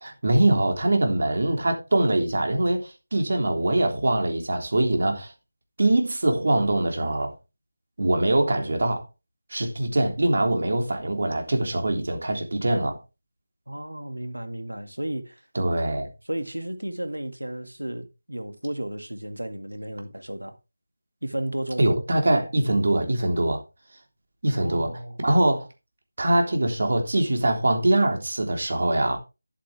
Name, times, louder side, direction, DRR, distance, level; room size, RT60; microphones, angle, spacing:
voice 1, 0.0-5.3 5.8-7.3 8.0-9.0 9.5-13.0 15.5-16.1 21.8-23.6 24.4-24.9 25.2-25.7 26.2-29.2, right 1 dB, 50° right, 3.4 m, -23 dB
voice 2, 13.7-15.4 16.3-20.6 21.2-22.0 24.6-25.2, right 1 dB, 85° right, 2.1 m, -33 dB
11.0 x 8.4 x 3.4 m
figure-of-eight pair, 165°, 0 cm